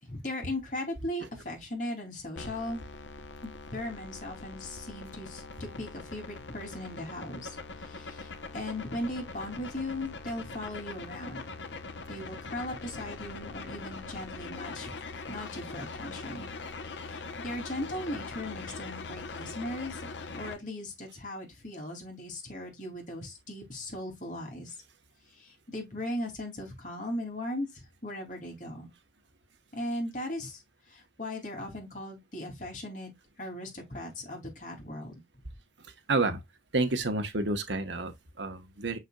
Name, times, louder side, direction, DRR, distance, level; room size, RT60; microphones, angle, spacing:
voice 1, 0.0-2.9 3.4-11.4 12.1-14.9 15.3-16.5 16.9-20.1 20.3-24.8 25.3-28.9 29.7-30.6 30.9-33.1 33.4-35.4, left 1 dB, 45° left, 3.3 m, -38 dB
sound 1, 2.4-20.5, left 3 dB, 90° left, 1.1 m, -42 dB
voice 2, 36.1-36.4 36.7-39.0, right 2 dB, 85° right, 1.4 m, -29 dB
6.7 x 6.0 x 2.4 m
head